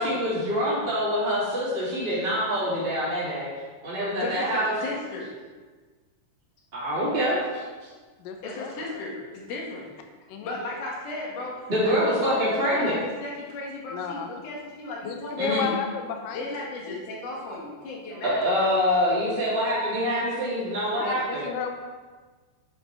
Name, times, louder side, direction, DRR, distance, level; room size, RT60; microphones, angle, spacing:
voice 1, 0.0-3.5 3.8-4.7 6.7-7.7 11.7-13.0 15.4-15.6 18.1-21.4, equal, 15° right, -10 dB, 2.1 m, -25 dB
voice 2, 4.2-5.4 8.4-10.0 10.4-15.8 16.3-18.7, left 2 dB, 50° left, -3 dB, 3.1 m, -35 dB
voice 3, 8.2-8.7 10.3-10.6 13.9-14.3 15.0-16.5 16.9-17.0 21.0-21.7, left 7 dB, 90° left, 4 dB, 1.9 m, -32 dB
9.9 x 8.3 x 5.0 m, 1.4 s
omnidirectional pair, 5.3 m